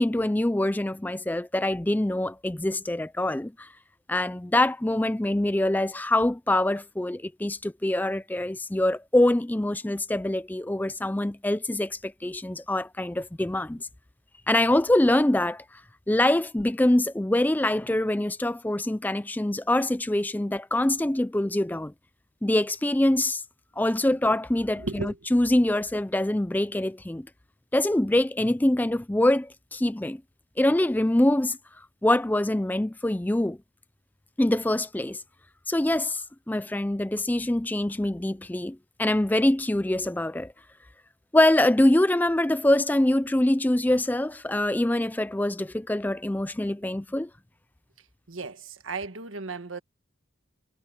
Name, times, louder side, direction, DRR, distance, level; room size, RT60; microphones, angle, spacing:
voice 1, 0.0-3.7 4.1-13.9 14.5-15.6 16.1-21.9 22.4-23.4 23.8-27.3 27.7-30.2 30.6-31.6 32.0-33.6 34.4-35.2 35.7-40.5 41.3-47.3, left 1 dB, 10° left, 0.4 m, -24 dB
voice 2, 24.8-25.2 48.3-49.8, right 3 dB, 80° right, 1.5 m, -35 dB
head